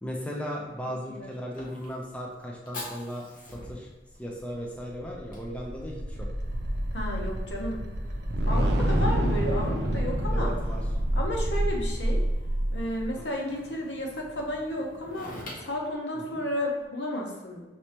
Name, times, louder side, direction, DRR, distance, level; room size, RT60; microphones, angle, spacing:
voice 1, 0.0-3.9 4.2-6.3 8.6-8.9 10.3-10.8 13.2-13.3 16.3-16.4, equal, 5° left, -2 dB, 0.5 m, -37 dB
Fire, 0.6-16.8, left 1 dB, 50° left, 0.9 m, -48 dB
voice 2, 0.9-1.3 6.9-7.8 8.4-10.5 11.2-12.2 12.7-17.6, left 1 dB, 80° left, -1 dB, 0.9 m, -32 dB
sound 1, 4.8-13.2, equal, 65° right, 0.6 m, -27 dB
5.3 x 3.2 x 2.9 m, 1.2 s
head